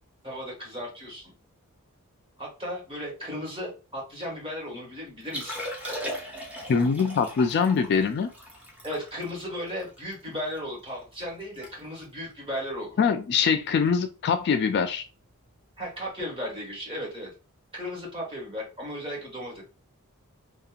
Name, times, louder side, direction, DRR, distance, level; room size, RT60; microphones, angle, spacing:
voice 1, 0.2-1.3 2.4-5.6 8.8-13.0 15.8-17.3 17.7-19.6, equal, 25° right, -3 dB, 1.4 m, -35 dB
Liquid, 5.2-10.6 11.0-11.1 11.4-11.7 12.0-12.2 12.8-13.1 14.5-14.6, equal, 5° right, 0.7 m, -38 dB
voice 2, 6.7-8.3 13.0-15.0, left 6 dB, 50° left, 7 dB, 0.3 m, -23 dB
2.8 x 2.3 x 2.4 m, 0.31 s
head